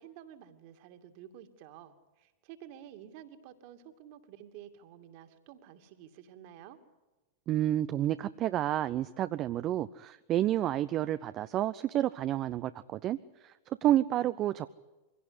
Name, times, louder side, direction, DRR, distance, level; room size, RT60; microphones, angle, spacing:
voice 1, 0.0-6.8, right 10 dB, 55° right, 8 dB, 2.6 m, -51 dB
voice 2, 7.5-14.7, right 12 dB, 40° right, 12 dB, 0.7 m, -30 dB
24.0 x 17.0 x 9.9 m, 1.1 s
hypercardioid pair, 95°, 0 cm